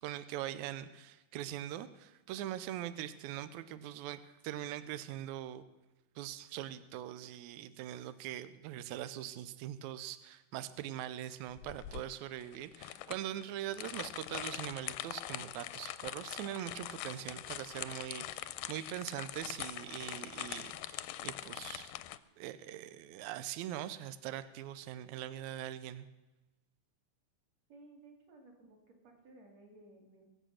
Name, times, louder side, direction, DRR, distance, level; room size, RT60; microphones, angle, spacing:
voice 1, 0.0-5.6 6.1-21.9 22.4-26.1, right 12 dB, 90° right, 12 dB, 1.7 m, -42 dB
sound 1, 11.6-22.2, left 14 dB, 80° left, 2.0 m, -43 dB
voice 2, 27.7-30.3, right 2 dB, 50° right, 1 dB, 3.5 m, -58 dB
23.0 x 7.8 x 6.4 m, 1.0 s
omnidirectional pair, 4.1 m